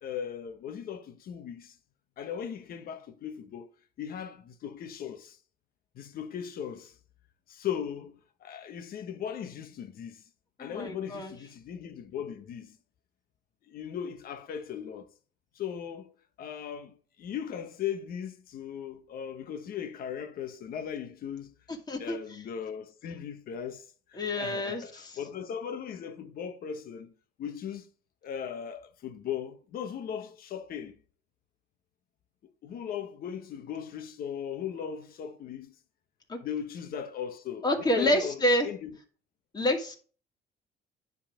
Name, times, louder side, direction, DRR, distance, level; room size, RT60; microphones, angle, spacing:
voice 1, 0.0-1.8 2.2-3.7 4.0-5.4 5.9-7.0 7.5-8.1 8.4-10.2 10.6-12.8 13.7-15.1 15.5-16.1 16.4-21.5 22.0-27.1 27.4-27.9 28.2-31.0 32.6-35.7 36.4-37.7 38.0-39.0, left 8 dB, 60° left, 1.3 m, -38 dB
voice 2, 10.6-11.3 21.9-22.2 24.2-25.1 36.3-36.4 37.6-38.7 39.5-40.0, left 1 dB, 25° left, 2.3 m, -28 dB
10.0 x 4.1 x 5.1 m
cardioid pair, 110°, 17 cm